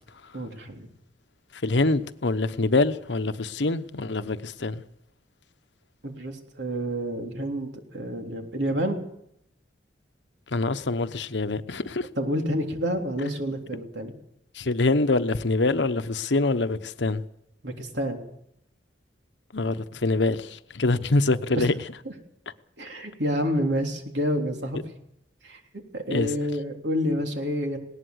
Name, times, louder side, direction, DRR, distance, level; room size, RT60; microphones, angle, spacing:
voice 1, 0.3-0.9 6.0-9.0 12.2-14.2 17.6-18.2 21.5-21.7 22.1-22.2 22.8-24.8 25.4-25.6 25.9-27.8, equal, 80° right, 3.4 m, -28 dB
voice 2, 1.6-4.8 10.5-12.1 14.5-17.2 19.5-21.7 26.1-26.3, left 2 dB, 80° left, 1.0 m, -25 dB
19.5 x 18.5 x 7.9 m
head